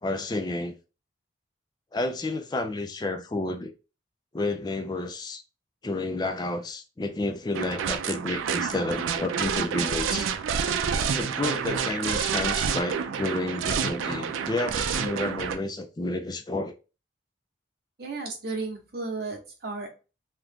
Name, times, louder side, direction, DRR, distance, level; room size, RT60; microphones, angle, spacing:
voice 1, 0.0-0.8 1.9-3.7 4.3-5.4 5.8-10.3 11.1-16.7, left 2 dB, 20° left, 0.3 m, -30 dB
sound 1, 7.5-15.6, right 7 dB, 90° right, 0.4 m, -28 dB
voice 2, 18.0-19.9, right 3 dB, 50° right, 0.9 m, -34 dB
2.8 x 2.4 x 3.4 m
head